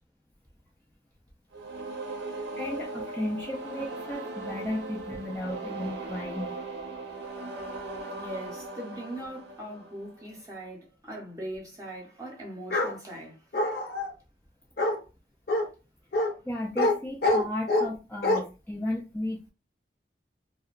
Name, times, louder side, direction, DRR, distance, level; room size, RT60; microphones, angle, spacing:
sound 1, 1.5-10.4, right 3 dB, 75° right, 0.6 m, -38 dB
voice 1, 2.6-6.6 16.5-19.5, left 1 dB, 10° left, 0.3 m, -34 dB
voice 2, 8.2-13.4, right 1 dB, 20° right, 0.7 m, -40 dB
Bark, 12.7-12.9 13.5-14.1 14.8-15.0 15.5-15.6 16.1-16.3 16.8-16.9 17.2-17.9 18.2-18.4, left 2 dB, 55° left, 0.7 m, -25 dB
2.7 x 2.1 x 2.3 m
head